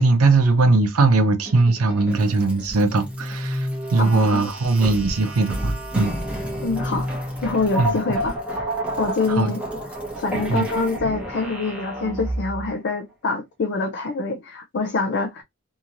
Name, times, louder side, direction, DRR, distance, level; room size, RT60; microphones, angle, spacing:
voice 1, 0.0-6.1 7.8-7.9 9.3-9.5 10.5-10.7, right 3 dB, 80° right, 0.6 m, -19 dB
sound 1, 1.4-12.7, equal, 5° right, 0.8 m, -30 dB
voice 2, 4.0-4.5 6.6-8.7 9.0-9.6 10.2-15.4, left 3 dB, 50° left, 0.4 m, -25 dB
2.9 x 2.7 x 2.5 m
head